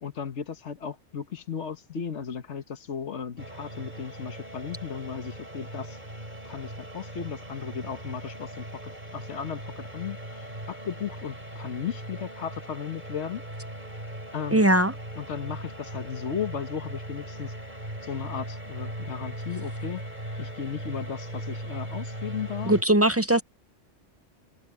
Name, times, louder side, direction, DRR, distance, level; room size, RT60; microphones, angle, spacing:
voice 1, 0.0-6.0 6.4-13.4 14.3-14.7 15.2-17.5 18.0-20.0 20.4-22.7, left 7 dB, 80° left, 1.6 m, -35 dB
sound 1, 3.4-22.8, right 1 dB, 40° right, 6.1 m, -39 dB
voice 2, 14.5-14.9 22.6-23.4, right 1 dB, 20° right, 0.4 m, -20 dB
omnidirectional pair, 1.2 m